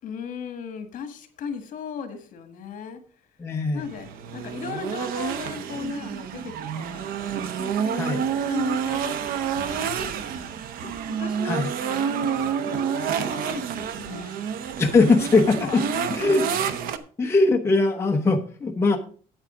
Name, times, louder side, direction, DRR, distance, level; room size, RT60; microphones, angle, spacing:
voice 1, 0.0-3.0 3.7-7.1 7.6-14.4 15.0-16.8, left 6 dB, 65° left, 8 dB, 1.7 m, -37 dB
voice 2, 3.4-3.8 7.9-8.2 11.4-11.7 14.8-15.8 16.1-16.4 17.2-19.0, left 3 dB, 15° left, 2 dB, 0.9 m, -20 dB
sound 1, 3.8-17.0, right 8 dB, 85° right, 0.9 m, -29 dB
8.9 x 8.3 x 5.0 m, 0.41 s
cardioid pair, 170°, 15 cm